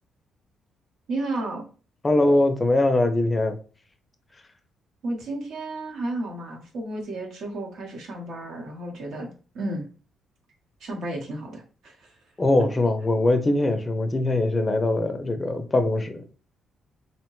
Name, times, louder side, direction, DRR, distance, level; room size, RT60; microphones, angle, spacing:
voice 1, 1.1-1.7 5.0-9.3 9.5-9.9 10.8-12.1, right 2 dB, 75° right, 0 dB, 0.9 m, -32 dB
voice 2, 2.0-3.6 12.4-16.2, left 2 dB, 25° left, 8 dB, 0.4 m, -22 dB
2.8 x 2.1 x 3.0 m, 0.37 s
cardioid pair, 90°, 0 cm